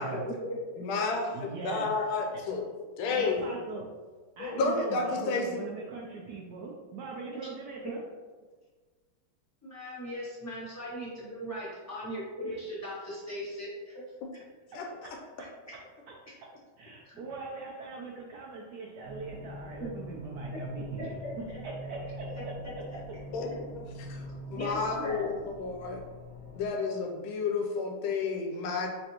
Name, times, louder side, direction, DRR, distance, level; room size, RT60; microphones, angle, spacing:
voice 1, 0.1-0.6 7.3-7.5 7.8-7.9 9.6-14.0 15.7-15.8 17.0-17.2 19.8-19.9 20.8-21.6 22.9-23.0 24.5-25.3, equal, 10° left, -8 dB, 0.9 m, -39 dB
voice 2, 0.8-2.7 3.0-3.5 4.4-5.6 14.7-15.2 23.3-26.0 26.5-28.9, left 4 dB, 80° left, 2 dB, 1.4 m, -31 dB
voice 3, 1.3-1.9 3.1-3.9 4.4-8.0 12.4-12.6 15.0-15.1 16.8-22.5, right 4 dB, 80° right, -2 dB, 0.9 m, -41 dB
sound 1, 19.0-26.7, equal, 45° left, 1.0 m, -43 dB
4.1 x 3.4 x 2.9 m, 1.4 s
omnidirectional pair, 2.4 m